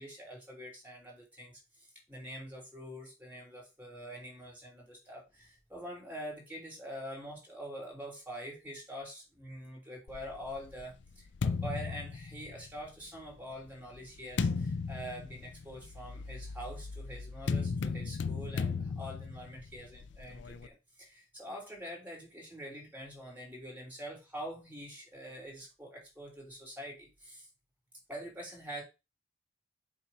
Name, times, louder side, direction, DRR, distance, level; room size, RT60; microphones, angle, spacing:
voice 1, 0.0-27.5 28.1-28.8, equal, 10° right, -1 dB, 3.0 m, -45 dB
sound 1, 10.1-12.9 13.6-20.7, left 4 dB, 70° left, 0.4 m, -36 dB
7.2 x 2.5 x 5.5 m, 0.26 s
head